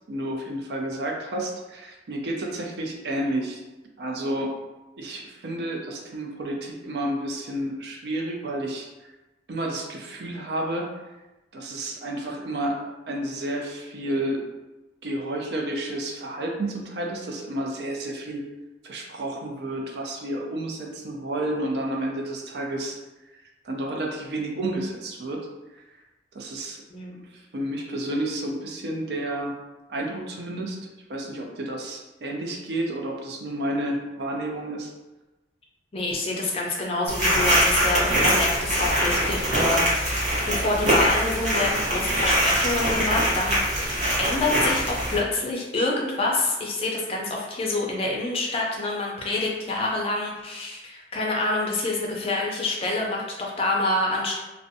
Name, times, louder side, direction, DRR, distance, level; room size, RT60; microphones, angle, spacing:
voice 1, 0.1-3.6 4.0-4.5 5.0-8.9 9.5-10.9 11.5-12.8 13.1-14.4 15.0-18.4 18.8-23.0 23.3-25.5 25.7-25.8 26.3-26.8 27.3-29.5 29.9-30.8 31.1-34.9, right 1 dB, 65° right, 0 dB, 0.4 m, -30 dB
voice 2, 35.9-43.6 44.2-54.3, left 2 dB, 35° left, -1 dB, 0.4 m, -27 dB
sound 1, 37.1-45.2, equal, 40° right, 0.8 m, -23 dB
2.5 x 2.1 x 2.6 m, 1.1 s
head